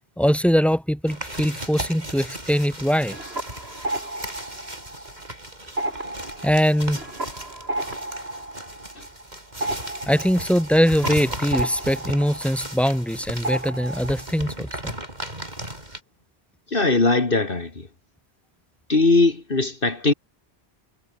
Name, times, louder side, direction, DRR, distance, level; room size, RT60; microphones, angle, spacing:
voice 1, 0.2-3.2 6.4-7.0 10.1-14.9, equal, ahead, 6.1 m, -22 dB
sound 1, 1.1-16.0, right 1 dB, 45° right, 6.9 m, -36 dB
sound 2, 3.0-5.3 5.6-13.1 13.4-14.3, right 1 dB, 75° right, 6.2 m, -33 dB
voice 2, 16.7-17.9 18.9-20.1, left 3 dB, 55° left, 2.7 m, -20 dB
omnidirectional pair, 1.1 m